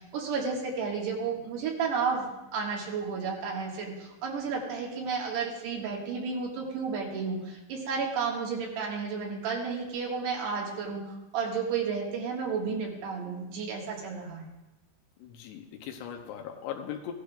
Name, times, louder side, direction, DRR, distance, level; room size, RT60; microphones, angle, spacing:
voice 1, 0.0-2.3 2.5-14.5, right 5 dB, 80° right, -2 dB, 3.9 m, -32 dB
voice 2, 15.2-17.1, left 9 dB, 85° left, 3 dB, 2.9 m, -39 dB
16.5 x 11.5 x 2.4 m, 0.98 s
omnidirectional pair, 4.7 m